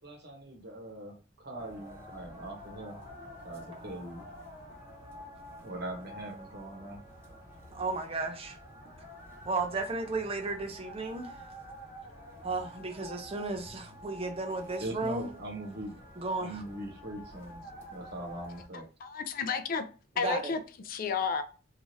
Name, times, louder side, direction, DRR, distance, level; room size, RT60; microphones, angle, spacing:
voice 1, 0.0-3.1 3.4-4.3 5.6-7.0 14.8-16.0 16.4-17.6 17.9-18.9, right 1 dB, 60° right, 1.0 m, -41 dB
sound 1, 1.6-18.7, equal, 15° right, 0.9 m, -49 dB
voice 2, 7.7-8.6 9.5-11.3 12.4-15.3 16.2-16.6 20.2-20.5, right 3 dB, 30° right, 0.5 m, -34 dB
voice 3, 19.0-19.9 20.2-20.6 20.9-21.4, left 5 dB, 50° left, 0.4 m, -31 dB
3.1 x 2.4 x 2.6 m
head